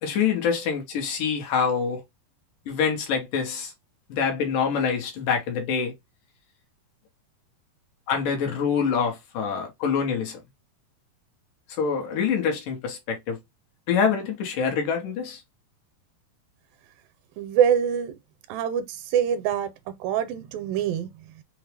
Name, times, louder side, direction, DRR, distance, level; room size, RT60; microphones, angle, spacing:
voice 1, 0.0-2.0 2.7-3.7 4.1-5.9 8.1-10.4 11.8-13.4 13.9-15.4, left 6 dB, 75° left, 2.3 m, -25 dB
voice 2, 17.4-18.1 18.5-21.4, right 8 dB, 80° right, 2.3 m, -25 dB
5.7 x 2.0 x 3.2 m
omnidirectional pair, 4.1 m